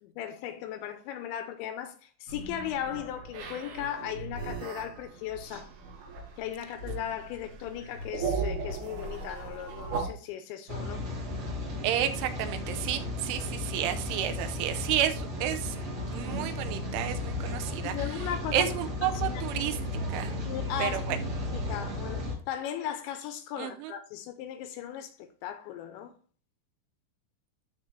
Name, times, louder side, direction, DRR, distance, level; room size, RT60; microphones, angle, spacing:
voice 1, 0.0-5.7 6.4-11.1 17.8-18.7 19.0-19.4 20.5-26.1, left 10 dB, 85° left, 2.8 m, -37 dB
sound 1, 2.3-10.1, right 4 dB, 60° right, 3.1 m, -37 dB
Rain, 10.7-22.3, left 2 dB, 40° right, 2.4 m, -34 dB
voice 2, 11.8-15.8 16.1-17.9 18.5-19.8 20.1-20.3 20.8-21.2 23.6-23.9, right 11 dB, 90° right, 3.1 m, -31 dB
12.5 x 4.3 x 3.2 m
omnidirectional pair, 5.6 m